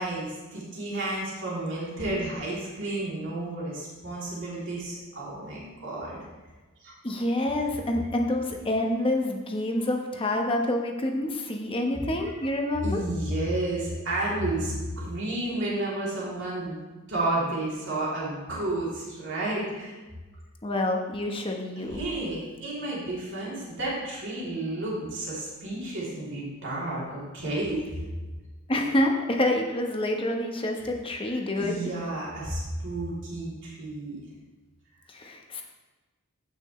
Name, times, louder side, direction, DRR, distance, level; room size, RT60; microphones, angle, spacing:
voice 1, 0.0-6.2 6.8-6.9 12.0-12.3 12.8-16.8 17.1-19.9 21.9-28.0 30.8-30.9 31.3-34.2, right 2 dB, 60° right, -6 dB, 3.1 m, -31 dB
voice 2, 7.0-13.0 20.6-22.0 28.7-31.8 35.1-35.6, left 1 dB, 25° left, 2 dB, 1.1 m, -27 dB
15.5 x 6.2 x 3.2 m, 1.2 s
head